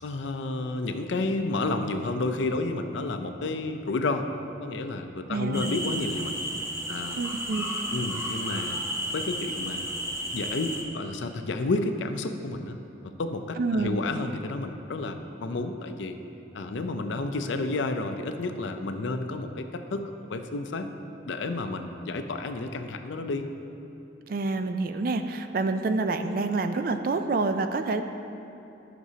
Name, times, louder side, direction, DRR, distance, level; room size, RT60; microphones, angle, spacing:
voice 1, 0.0-4.3 4.6-6.3 6.9-7.2 7.9-8.8 9.1-10.0 10.3-12.8 13.0-16.2 16.5-20.9 21.3-23.4, left 2 dB, 75° left, 7 dB, 0.5 m, -31 dB
voice 2, 5.3-5.8 7.2-7.8 13.6-14.0 24.3-28.0, right 3 dB, 50° right, 8 dB, 0.3 m, -27 dB
sound 1, 5.5-10.8, equal, 15° right, 0.7 m, -33 dB
12.5 x 6.0 x 2.8 m, 2.8 s
head